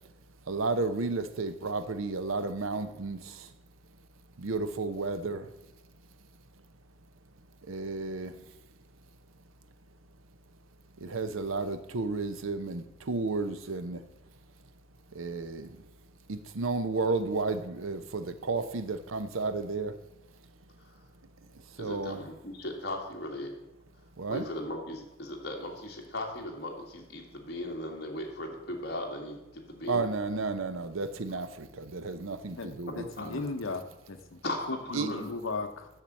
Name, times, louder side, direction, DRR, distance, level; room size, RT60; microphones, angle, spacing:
voice 1, 0.5-3.5 4.4-5.5 7.6-8.4 11.0-14.0 15.1-15.8 16.3-20.0 21.7-22.2 24.2-24.4 29.9-33.4 34.9-35.1, right 3 dB, 85° right, 11 dB, 0.7 m, -32 dB
voice 2, 21.8-23.5 24.3-30.1 33.2-33.3 34.4-35.2, left 1 dB, 50° left, 0 dB, 2.0 m, -37 dB
voice 3, 32.6-35.9, left 3 dB, 80° left, 7 dB, 0.9 m, -37 dB
7.3 x 6.7 x 7.4 m, 0.94 s
head